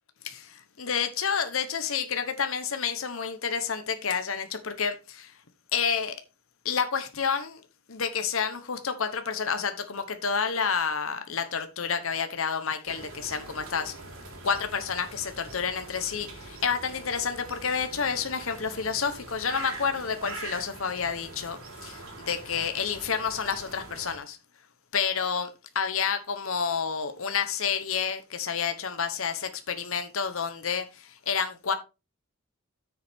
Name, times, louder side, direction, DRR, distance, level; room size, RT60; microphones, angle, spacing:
voice 1, 0.2-5.3 5.7-6.2 6.6-7.6 7.9-13.9 14.4-24.4 24.9-31.7, left 6 dB, 75° left, 1.0 m, -29 dB
sound 1, 12.8-24.2, right 3 dB, 80° right, 3.8 m, -43 dB
8.7 x 6.9 x 3.6 m
head